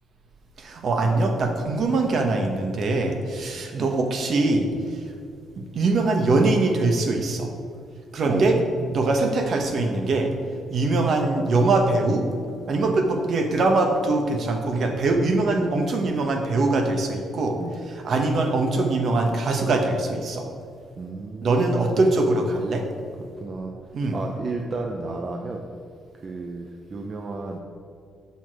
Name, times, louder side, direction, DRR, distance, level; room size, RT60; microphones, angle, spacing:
voice 1, 0.6-5.0 5.6-7.5 8.1-8.6 8.9-10.3 10.7-12.3 12.7-17.6 18.0-20.5 21.4-22.8 23.9-24.2, right 2 dB, 60° right, 4 dB, 1.1 m, -22 dB
voice 2, 8.2-8.6 15.4-15.6 17.6-17.8 21.0-22.0 23.3-23.7 24.1-25.6 26.1-27.6, right 3 dB, 40° right, 2 dB, 0.6 m, -33 dB
7.0 x 6.1 x 4.7 m, 2.3 s
cardioid pair, 90°, 0 cm